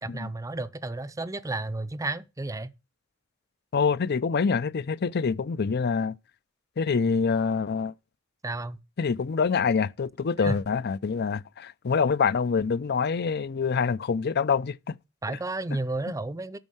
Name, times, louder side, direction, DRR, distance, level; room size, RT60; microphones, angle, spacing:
voice 1, 0.0-2.7 8.4-8.8 10.4-10.6 15.2-16.6, right 2 dB, 15° right, 0.5 m, -32 dB
voice 2, 3.7-6.2 6.8-7.9 9.0-14.9, left 5 dB, 50° left, 0.5 m, -26 dB
13.0 x 4.5 x 7.8 m
head